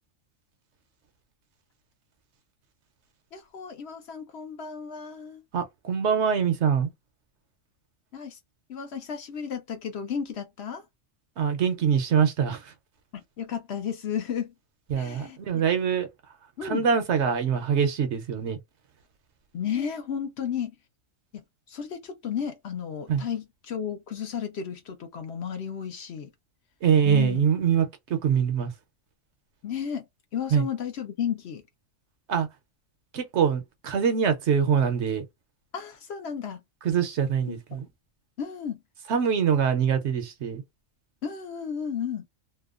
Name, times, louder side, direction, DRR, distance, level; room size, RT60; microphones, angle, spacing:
voice 1, 3.3-5.4 8.1-8.4 8.7-10.8 13.1-14.5 14.9-15.6 16.6-16.9 19.5-20.7 21.3-21.4 21.7-26.3 27.1-27.5 29.6-30.1 30.3-31.6 35.7-36.6 37.5-37.8 38.4-38.8 41.2-42.3, left 8 dB, 60° left, 0.9 m, -33 dB
voice 2, 5.5-6.9 11.4-12.7 14.9-16.1 16.6-18.6 23.1-23.2 26.8-28.7 30.5-30.6 32.3-32.5 33.1-35.2 36.8-37.9 39.1-40.6, right 7 dB, 65° right, 0.8 m, -24 dB
2.8 x 2.2 x 2.3 m
omnidirectional pair, 1.4 m